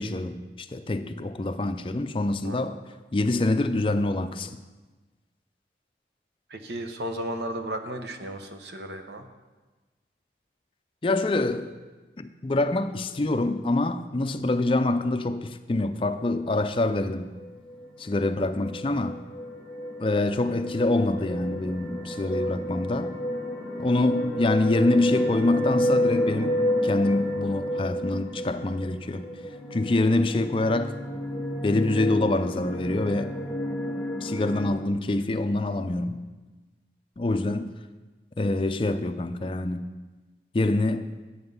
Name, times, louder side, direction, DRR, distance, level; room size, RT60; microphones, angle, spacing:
voice 1, 0.0-2.8 3.1-4.5 11.0-11.7 12.2-17.3 18.0-19.2 20.0-23.1 23.8-29.3 29.7-31.0 31.6-33.3 34.2-36.2 37.2-37.7 38.4-39.9 40.5-41.1, left 2 dB, 30° left, 0.4 m, -25 dB
voice 2, 6.5-9.3, right 1 dB, 70° right, 1.0 m, -34 dB
sound 1, 17.4-34.7, equal, 5° left, 1.2 m, -31 dB
9.8 x 8.6 x 5.4 m
head